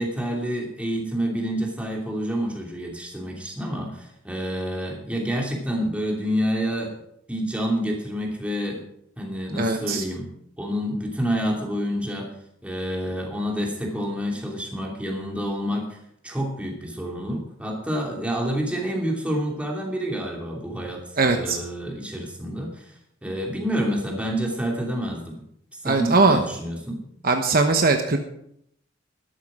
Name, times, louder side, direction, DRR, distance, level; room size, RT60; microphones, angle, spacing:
voice 1, 0.0-7.0 7.3-8.8 9.2-10.3 10.6-12.3 12.6-16.0 16.2-21.0 21.3-22.9 23.2-25.4 25.8-27.0, equal, 5° right, -1 dB, 2.8 m, -28 dB
voice 2, 9.6-10.0 21.2-21.6 25.8-26.4 27.2-28.2, right 3 dB, 50° right, 5 dB, 1.1 m, -20 dB
13.0 x 11.5 x 4.9 m, 0.74 s
head